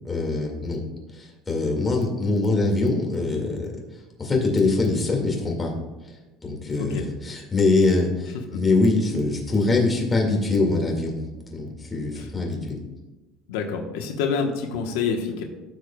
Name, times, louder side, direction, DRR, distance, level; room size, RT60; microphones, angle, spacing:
voice 1, 0.0-0.8 1.1-5.7 6.0-6.1 6.4-11.2 11.5-12.8, left 3 dB, 15° left, -1 dB, 2.1 m, -23 dB
voice 2, 12.1-12.6 13.5-15.4, left 5 dB, 90° left, 3 dB, 1.1 m, -28 dB
15.0 x 6.5 x 2.3 m, 1.2 s
cardioid pair, 135°, 0 cm